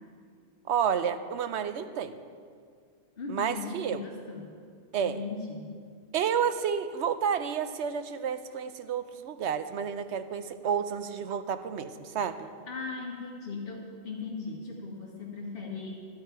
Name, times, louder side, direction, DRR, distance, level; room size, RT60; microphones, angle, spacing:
voice 1, 0.7-2.2 3.3-4.0 4.9-5.2 6.1-12.5, right 7 dB, 85° right, 10 dB, 0.9 m, -30 dB
voice 2, 3.2-4.5 5.0-5.7 12.4-16.1, left 4 dB, 60° left, -4 dB, 1.6 m, -38 dB
12.5 x 10.5 x 4.5 m, 2.1 s
omnidirectional pair, 1.1 m